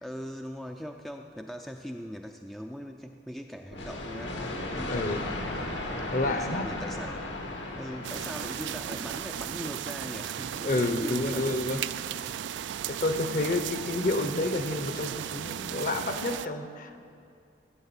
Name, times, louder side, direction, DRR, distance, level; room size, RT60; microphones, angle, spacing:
voice 1, 0.0-5.3 6.2-7.3 7.7-11.6, equal, ahead, 3 dB, 0.4 m, -40 dB
sound 1, 3.7-9.4, left 2 dB, 75° left, 1.7 m, -36 dB
voice 2, 4.9-5.2 6.1-6.6 10.6-11.8 12.9-17.0, left 2 dB, 45° left, 8 dB, 0.9 m, -29 dB
sound 2, 8.0-16.5, right 10 dB, 75° right, 0.3 m, -35 dB
16.0 x 8.3 x 7.1 m, 2.4 s
head